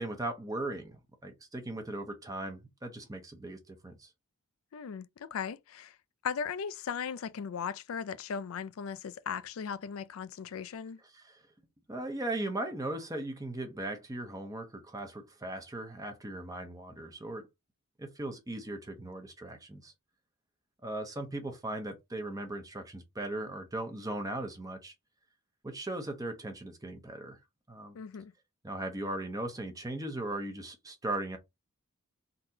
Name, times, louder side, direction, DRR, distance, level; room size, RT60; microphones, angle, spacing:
voice 1, 0.0-4.1 11.1-11.4 11.9-17.5 18.0-19.9 20.8-24.9 25.6-27.4 27.7-28.0 28.6-31.4, right 1 dB, 15° right, 0.7 m, -38 dB
voice 2, 4.7-6.0 6.2-11.0 27.9-28.3, left 6 dB, 70° left, 0.4 m, -37 dB
3.9 x 2.8 x 2.7 m
head